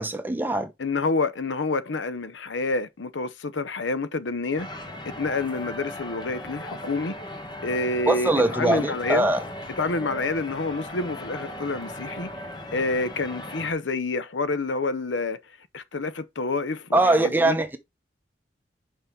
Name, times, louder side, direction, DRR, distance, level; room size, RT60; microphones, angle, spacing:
voice 1, 0.0-0.7 8.1-9.4 16.9-17.8, right 2 dB, 10° right, 0.8 m, -22 dB
voice 2, 0.8-4.7 5.0-7.3 7.6-9.3 9.8-15.4 15.7-17.6, left 3 dB, 90° left, 0.8 m, -28 dB
sound 1, 4.6-13.7, left 1 dB, 25° left, 1.3 m, -38 dB
5.7 x 5.6 x 4.5 m
head